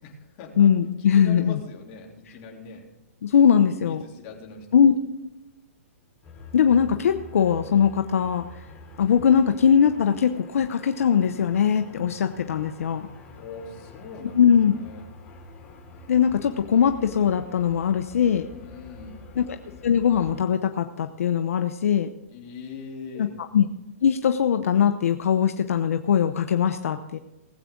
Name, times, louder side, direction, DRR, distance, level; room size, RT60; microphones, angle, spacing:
voice 1, 0.0-0.7 1.0-2.9 3.8-5.0 13.3-15.0 18.6-19.2 22.3-23.4, left 4 dB, 35° left, 0 dB, 3.4 m, -41 dB
voice 2, 0.6-1.6 3.2-4.0 4.7-4.9 6.5-8.4 9.0-13.1 14.4-14.8 16.1-18.5 19.4-19.5 19.8-22.1 23.2-23.3 23.5-23.6 24.0-27.2, left 8 dB, 75° left, 7 dB, 0.9 m, -20 dB
sound 1, 6.2-20.5, left 3 dB, 20° left, 2.9 m, -46 dB
19.5 x 8.5 x 3.8 m, 1.0 s
hypercardioid pair, 150°, 8 cm